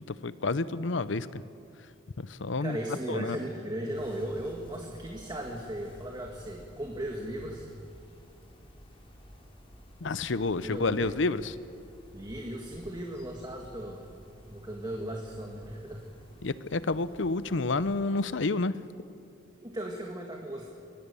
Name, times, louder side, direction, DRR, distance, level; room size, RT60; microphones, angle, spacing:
voice 1, 0.2-1.4 2.2-2.8 3.1-3.4 10.0-11.5 16.4-18.8, left 3 dB, 80° left, 15 dB, 0.7 m, -29 dB
voice 2, 2.6-7.7 10.6-11.2 12.1-14.0 14.5-16.0 19.6-20.7, right 1 dB, 25° right, 1 dB, 1.8 m, -37 dB
sound 1, 3.9-18.0, equal, 30° left, 4.0 m, -53 dB
24.5 x 18.0 x 7.0 m, 2.5 s
head